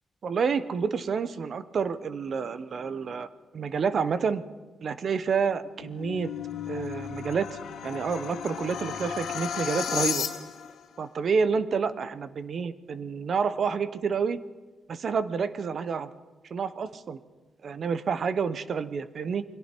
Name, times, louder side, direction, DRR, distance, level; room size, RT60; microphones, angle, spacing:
voice 1, 0.2-3.3 3.5-4.4 4.8-6.3 6.7-10.3 11.0-14.4 14.9-16.1 16.5-17.2 17.6-19.4, right 6 dB, 45° right, 13 dB, 0.9 m, -29 dB
sound 1, 5.6-10.8, left 8 dB, 85° left, 2.3 m, -34 dB
28.5 x 22.5 x 4.5 m, 1.2 s
wide cardioid pair, 160°, 0 cm